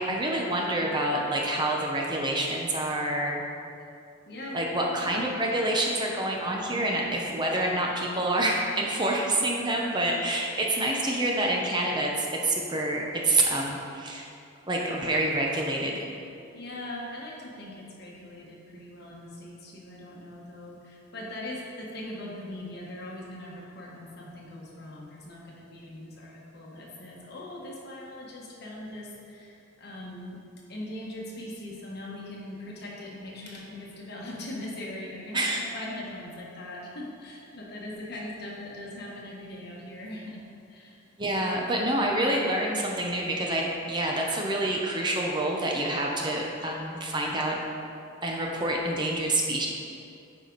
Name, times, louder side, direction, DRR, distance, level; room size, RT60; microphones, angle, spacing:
voice 1, 0.0-3.4 4.5-14.3 14.7-16.0 35.3-35.6 41.2-47.6 48.2-49.7, right 1 dB, 25° right, -1 dB, 0.7 m, -27 dB
voice 2, 4.3-4.7 5.2-5.5 9.5-9.8 16.5-30.4 30.7-41.0, left 1 dB, 55° left, -3 dB, 1.4 m, -41 dB
9.3 x 4.8 x 4.0 m, 2.5 s
head